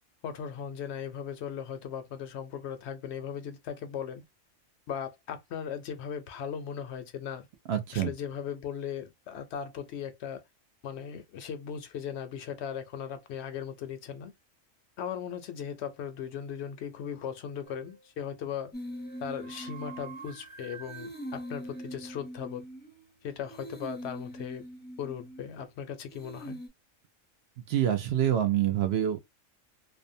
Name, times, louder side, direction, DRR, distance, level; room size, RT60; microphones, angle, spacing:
voice 1, 0.2-4.2 4.9-7.5 7.9-10.4 10.8-14.3 15.0-18.7 19.2-22.6 23.2-24.7 25.0-26.6, left 8 dB, 65° left, 0.8 m, -38 dB
voice 2, 7.7-8.1 27.7-29.2, right 10 dB, 65° right, 0.7 m, -26 dB
sound 1, 17.6-18.1 18.8-22.3, right 7 dB, 40° right, 1.1 m, -49 dB
sound 2, 18.7-20.5 20.8-23.1 23.5-25.7 26.1-26.7, equal, 10° left, 0.5 m, -42 dB
2.6 x 2.1 x 2.5 m
omnidirectional pair, 1.4 m